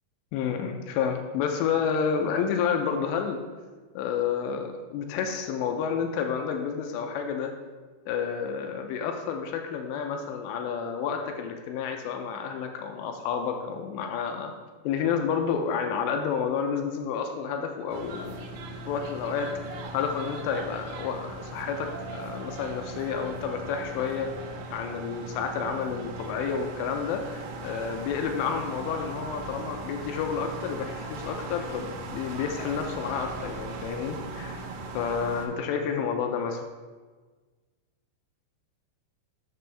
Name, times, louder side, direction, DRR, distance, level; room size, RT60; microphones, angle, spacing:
voice 1, 0.3-3.4 4.0-7.5 8.1-14.5 14.8-18.5 18.9-34.6 34.9-36.6, left 6 dB, 90° left, 4 dB, 2.8 m, -30 dB
sound 1, 17.9-35.5, right 2 dB, 85° right, 2.9 m, -39 dB
6.9 x 6.7 x 3.3 m, 1.4 s
omnidirectional pair, 4.9 m